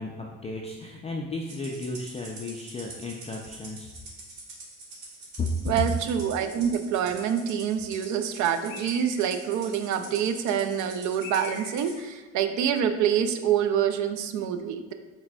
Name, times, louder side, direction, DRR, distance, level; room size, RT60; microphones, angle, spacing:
voice 1, 0.0-3.9 5.4-5.5, left 3 dB, 20° left, -1 dB, 0.3 m, -34 dB
Rattle (instrument), 1.5-12.0, right 2 dB, 75° right, 1.2 m, -45 dB
voice 2, 5.7-14.9, right 8 dB, 55° right, 8 dB, 0.4 m, -26 dB
Bird, 8.7-9.5 11.2-12.1, left 5 dB, 75° left, 0.7 m, -42 dB
4.7 x 3.3 x 2.2 m, 1.2 s
supercardioid pair, 80°, 36 cm